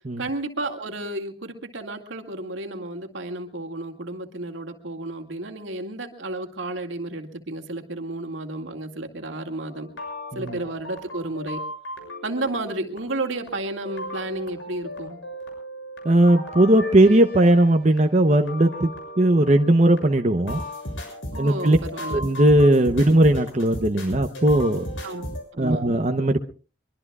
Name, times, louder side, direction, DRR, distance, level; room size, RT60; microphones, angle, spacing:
voice 1, 0.2-9.9 10.3-11.6 12.2-15.2 21.3-22.2 25.0-25.3 25.6-25.9, right 2 dB, 85° right, 3 dB, 2.2 m, -32 dB
sound 1, 9.7-25.4, equal, 90° left, 7.0 m, -36 dB
voice 2, 16.0-18.9 19.2-20.6 21.4-21.8 22.1-24.9 25.6-26.4, right 1 dB, 35° right, 6 dB, 0.8 m, -18 dB
23.5 x 23.0 x 2.4 m, 0.38 s
head